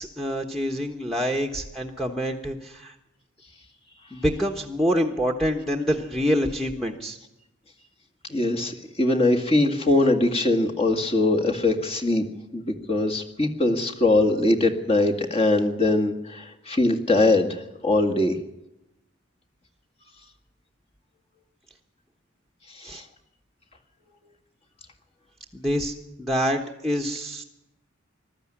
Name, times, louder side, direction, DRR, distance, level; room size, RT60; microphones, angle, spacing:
voice 1, 0.0-2.9 4.1-7.2 22.8-23.0 25.5-27.4, equal, ahead, 2 dB, 1.3 m, -26 dB
voice 2, 8.3-12.2 12.5-18.4 22.8-23.0, left 2 dB, 30° left, 2 dB, 1.9 m, -22 dB
21.0 x 13.0 x 9.9 m, 0.90 s
head